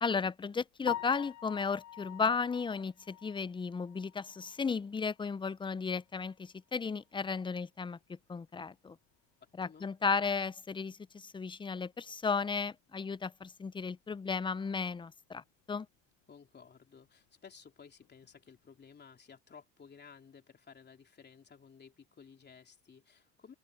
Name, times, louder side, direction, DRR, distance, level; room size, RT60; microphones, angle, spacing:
voice 1, 0.0-8.0 8.3-9.0 9.6-15.9, left 5 dB, 15° left, 0.5 m, -34 dB
Piano, 0.8-4.8 5.2-5.3 5.8-5.9 6.2-6.3 9.4-9.5 18.0-18.3, left 11 dB, 55° left, 1.0 m, -44 dB
voice 2, 16.3-23.5, left 6 dB, 30° left, 3.3 m, -56 dB
open air
supercardioid pair, 95°, 34 cm